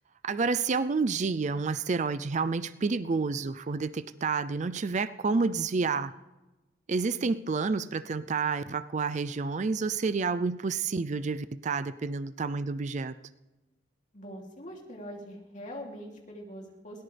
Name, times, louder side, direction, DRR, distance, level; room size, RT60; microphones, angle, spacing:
voice 1, 0.2-6.1 6.9-13.2, right 4 dB, 40° right, 13 dB, 0.4 m, -29 dB
voice 2, 14.1-17.0, equal, 40° left, -1 dB, 2.9 m, -43 dB
21.0 x 17.5 x 3.4 m, 1.1 s
head